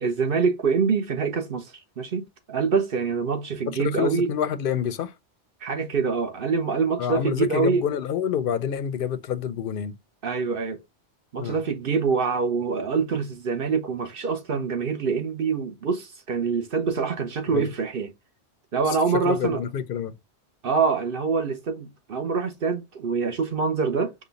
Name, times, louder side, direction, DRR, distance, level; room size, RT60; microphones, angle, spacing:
voice 1, 0.0-4.3 5.6-7.8 10.2-10.8 11.3-18.1 18.7-19.6 20.6-24.1, right 5 dB, 55° right, 1.0 m, -25 dB
voice 2, 3.7-5.1 7.0-10.0 11.4-11.6 17.5-17.7 18.9-20.2, left 8 dB, 60° left, 0.7 m, -28 dB
5.2 x 2.3 x 3.9 m
omnidirectional pair, 1.2 m